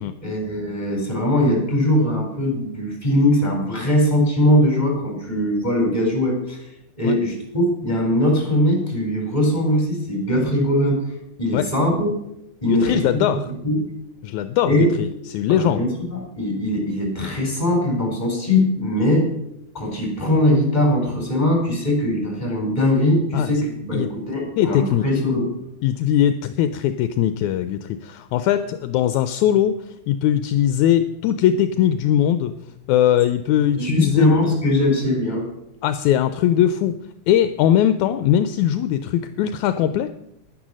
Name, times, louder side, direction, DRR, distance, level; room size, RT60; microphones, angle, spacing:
voice 1, 0.2-6.6 7.0-11.0 11.4-12.1 12.6-13.0 13.4-13.8 14.6-14.9 15.5-19.3 19.7-25.5 33.8-35.5, left 1 dB, 15° left, 1 dB, 3.8 m, -20 dB
voice 2, 12.7-13.4 14.2-15.9 23.3-24.1 24.6-25.1 25.8-29.8 30.1-32.5 32.9-34.3 35.8-36.9 37.3-40.1, left 10 dB, 80° left, 10 dB, 1.9 m, -20 dB
11.0 x 10.0 x 6.2 m, 0.81 s
omnidirectional pair, 3.5 m